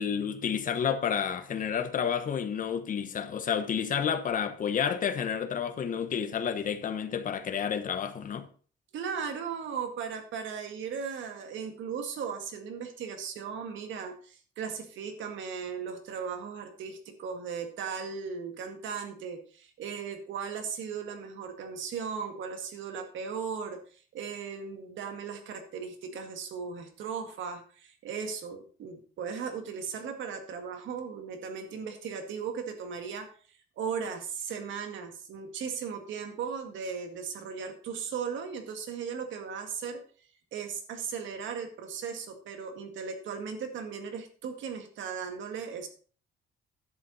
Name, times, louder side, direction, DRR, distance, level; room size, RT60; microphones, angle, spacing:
voice 1, 0.0-8.4, left 7 dB, 45° left, 1.1 m, -30 dB
voice 2, 8.9-33.3 33.8-40.0 40.5-45.9, right 6 dB, 75° right, 2.1 m, -37 dB
11.0 x 8.3 x 4.2 m
cardioid pair, 170°, 20 cm